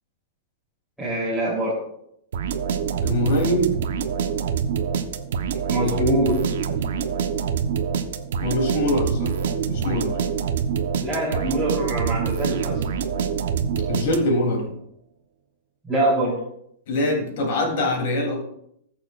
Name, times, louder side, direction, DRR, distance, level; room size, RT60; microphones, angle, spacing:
voice 1, 1.0-1.8 5.7-6.4 11.0-12.8 15.8-16.3, right 1 dB, ahead, -8 dB, 3.4 m, -23 dB
sound 1, 2.3-14.5, right 7 dB, 75° right, 1.0 m, -26 dB
voice 2, 3.0-3.7 8.4-9.4 9.7-10.2 13.9-14.7 16.9-18.4, left 1 dB, 60° left, 1 dB, 3.2 m, -23 dB
19.5 x 6.8 x 2.5 m, 0.73 s
supercardioid pair, 160°, 0 cm